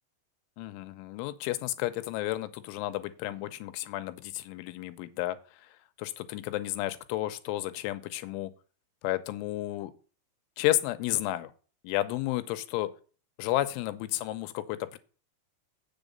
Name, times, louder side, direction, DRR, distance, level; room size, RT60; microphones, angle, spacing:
voice 1, 0.6-8.5 9.0-9.9 10.6-11.5 11.8-12.9 13.4-15.0, left 15 dB, 85° left, 11 dB, 3.2 m, -32 dB
8.2 x 7.0 x 5.3 m, 0.38 s
omnidirectional pair, 5.6 m